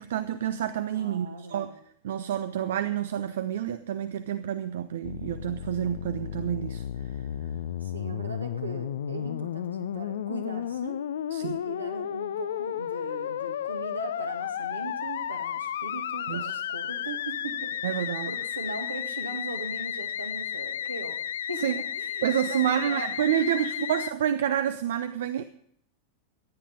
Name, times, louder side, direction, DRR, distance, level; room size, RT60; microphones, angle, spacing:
voice 1, 0.0-1.7 2.0-6.8 11.3-11.6 16.3-16.5 17.8-18.3 21.6-21.8 22.2-25.4, right 10 dB, 60° right, 12 dB, 0.6 m, -28 dB
voice 2, 0.9-1.7 7.8-11.0 11.4-21.2 21.5-23.1 23.4-23.5 23.8-23.9, right 3 dB, 80° right, 4 dB, 2.0 m, -39 dB
Musical instrument, 5.0-24.1, left 10 dB, 60° left, 0.5 m, -33 dB
15.0 x 10.0 x 5.3 m, 0.68 s
figure-of-eight pair, 90°, 0 cm